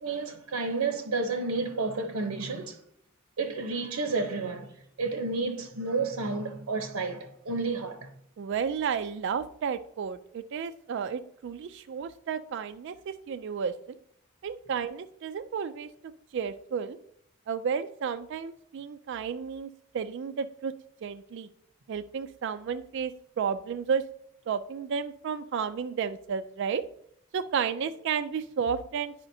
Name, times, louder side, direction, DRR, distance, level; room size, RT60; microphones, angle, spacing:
voice 1, 0.0-2.8 3.4-4.7 5.0-8.1, right 3 dB, 85° right, 0.7 m, -31 dB
voice 2, 8.4-14.0 14.4-17.0 17.5-20.7 21.0-21.5 21.9-24.0 24.5-26.8 27.3-29.1, right 6 dB, 55° right, 0.3 m, -32 dB
10.5 x 4.9 x 2.7 m
head